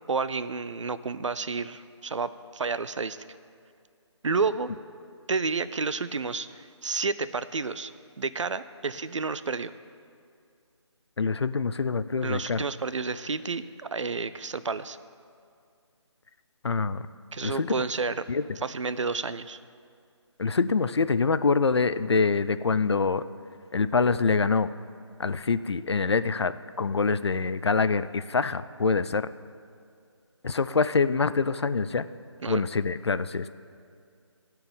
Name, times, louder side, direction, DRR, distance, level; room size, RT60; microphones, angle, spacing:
voice 1, 0.1-3.2 4.2-4.7 5.3-7.9 8.2-9.7 12.2-15.0 17.3-18.3 18.6-19.6 32.4-32.6, right 4 dB, 85° right, 15 dB, 0.5 m, -30 dB
voice 2, 11.2-12.6 16.6-17.0 17.4-17.7 18.3-18.4 20.4-23.2 23.7-24.7 25.2-29.3 30.4-32.1 32.5-33.5, left 4 dB, 60° left, 14 dB, 0.4 m, -25 dB
13.0 x 4.7 x 8.6 m, 2.3 s
figure-of-eight pair, 180°, 15 cm